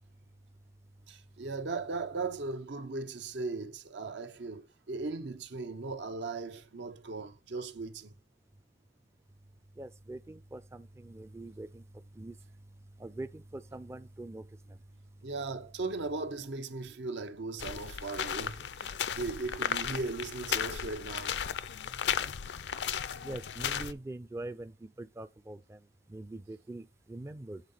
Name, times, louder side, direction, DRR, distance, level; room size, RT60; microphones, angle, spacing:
voice 1, 1.1-8.1 15.2-21.3, right 3 dB, 80° right, 0.8 m, -38 dB
voice 2, 9.8-11.8 12.1-12.4 13.0-14.8 23.2-27.6, right 2 dB, 15° right, 0.4 m, -43 dB
sound 1, 17.6-23.9, left 8 dB, 70° left, 0.5 m, -35 dB
8.1 x 4.0 x 5.4 m
head